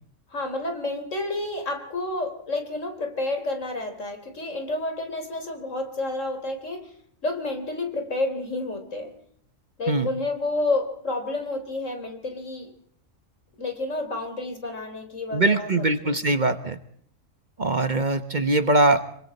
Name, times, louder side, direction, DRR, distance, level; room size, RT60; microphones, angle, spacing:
voice 1, 0.3-6.9 7.2-9.1 9.8-12.7 13.6-15.7 16.0-16.2, left 2 dB, 70° left, 5 dB, 4.0 m, -30 dB
voice 2, 15.3-16.8 17.6-19.0, right 2 dB, 40° right, 9 dB, 1.2 m, -22 dB
26.0 x 23.5 x 4.3 m, 0.64 s
omnidirectional pair, 1.3 m